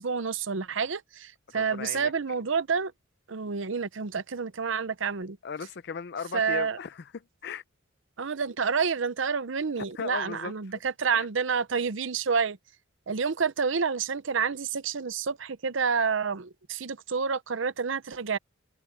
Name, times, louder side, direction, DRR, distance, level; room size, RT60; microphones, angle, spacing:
voice 1, 0.0-2.9 3.3-5.4 6.3-6.8 8.2-12.6 13.1-18.4, right 5 dB, 70° right, 0.7 m, -29 dB
voice 2, 1.5-2.1 5.4-7.6 9.8-10.5 11.1-11.3, left 6 dB, 55° left, 0.5 m, -37 dB
head